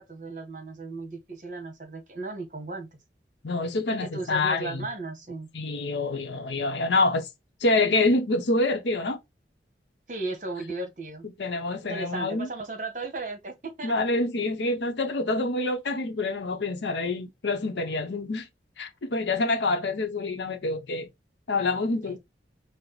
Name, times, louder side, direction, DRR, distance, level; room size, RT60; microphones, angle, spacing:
voice 1, 0.0-2.9 4.1-5.5 10.1-11.3 11.9-14.0 22.0-22.2, right 3 dB, 45° right, 1.1 m, -35 dB
voice 2, 3.4-4.9 5.5-7.3 7.6-9.2 11.4-12.5 13.8-18.5 18.8-21.1 21.5-22.2, left 2 dB, 85° left, 0.7 m, -26 dB
4.6 x 2.0 x 3.9 m
head